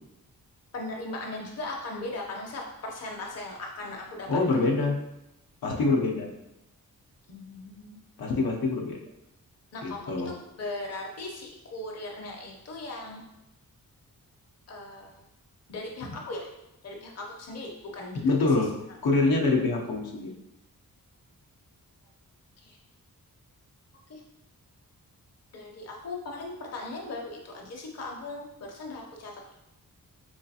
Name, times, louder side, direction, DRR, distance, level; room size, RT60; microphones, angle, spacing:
voice 1, 0.7-4.3 7.3-8.0 9.7-10.0 10.3-13.2 14.7-15.1 15.7-16.5 16.8-18.2 24.1-24.2 25.5-29.3, left 2 dB, 45° left, 0 dB, 0.7 m, -38 dB
voice 2, 4.3-5.0 5.6-6.3 8.2-9.0 9.8-10.3 18.1-18.7 19.0-20.3, left 3 dB, 80° left, -1 dB, 0.7 m, -25 dB
3.8 x 3.1 x 2.8 m, 0.88 s
wide cardioid pair, 145°, 35 cm